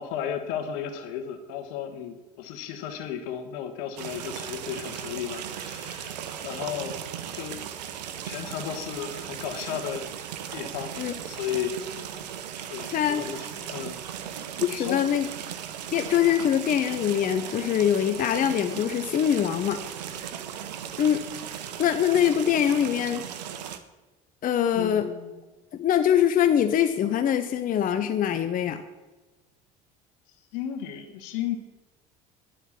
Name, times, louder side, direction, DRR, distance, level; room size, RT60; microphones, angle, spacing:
voice 1, 0.0-6.1 6.4-7.0 7.3-7.6 8.2-10.1 10.5-10.9 11.2-12.0 12.7-14.0 14.7-15.0 24.7-25.3 30.5-31.6, left 9 dB, 75° left, 6 dB, 1.2 m, -34 dB
sound 1, 4.0-23.8, right 9 dB, 90° right, 0.7 m, -37 dB
voice 2, 12.9-13.3 14.6-15.3 15.9-19.8 21.0-21.2 21.8-23.3 24.4-25.1 25.7-28.8, left 9 dB, 45° left, 8 dB, 0.7 m, -23 dB
10.0 x 4.6 x 7.2 m, 1.2 s
hypercardioid pair, 75°, 20 cm